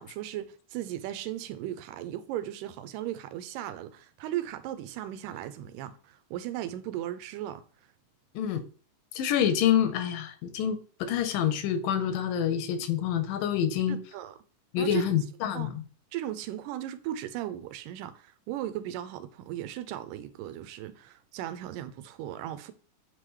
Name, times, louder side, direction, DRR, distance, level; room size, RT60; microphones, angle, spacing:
voice 1, 0.0-7.6 13.9-14.4 14.8-15.3 15.5-15.7 16.1-22.7, right 12 dB, 85° right, 2.2 m, -37 dB
voice 2, 9.2-14.0 14.7-15.8, left 9 dB, 85° left, 2.4 m, -27 dB
8.0 x 3.8 x 3.1 m
omnidirectional pair, 3.8 m